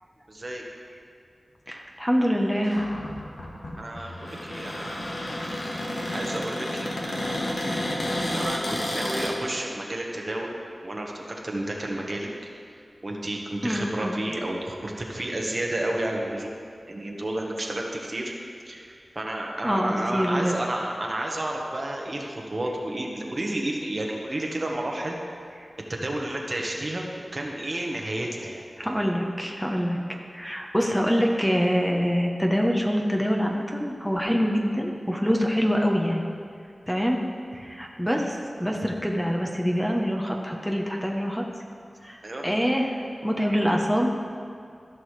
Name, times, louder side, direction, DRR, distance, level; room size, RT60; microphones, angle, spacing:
voice 1, 0.3-0.6 3.8-5.2 5.7-7.3 8.3-10.5 10.8-12.3 13.0-16.6 16.9-18.3 18.7-25.2 25.9-28.9 42.2-42.5, right 1 dB, 50° right, 0 dB, 1.2 m, -31 dB
voice 2, 1.7-2.9 13.6-14.2 19.6-20.6 28.8-30.0 30.3-36.3 36.9-37.2 37.5-41.4 42.0-44.1, equal, 5° left, 0 dB, 0.9 m, -25 dB
Cupboard open or close, 2.6-9.3, left 1 dB, 75° left, 1.4 m, -31 dB
14.5 x 6.2 x 3.3 m, 2.3 s
cardioid pair, 45°, 0 cm